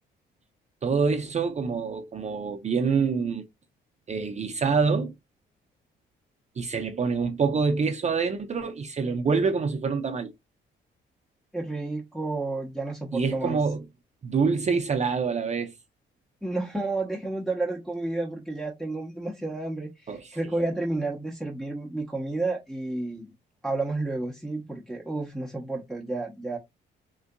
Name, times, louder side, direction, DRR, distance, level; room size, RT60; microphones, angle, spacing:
voice 1, 0.8-3.4 4.1-5.1 6.6-10.3 13.1-13.8 14.2-15.8 20.1-20.4, right 5 dB, 35° right, 0.6 m, -26 dB
voice 2, 11.5-13.6 16.4-23.3 23.6-26.6, right 2 dB, ahead, 0.8 m, -31 dB
3.8 x 2.4 x 2.2 m
cardioid pair, 90°, 20 cm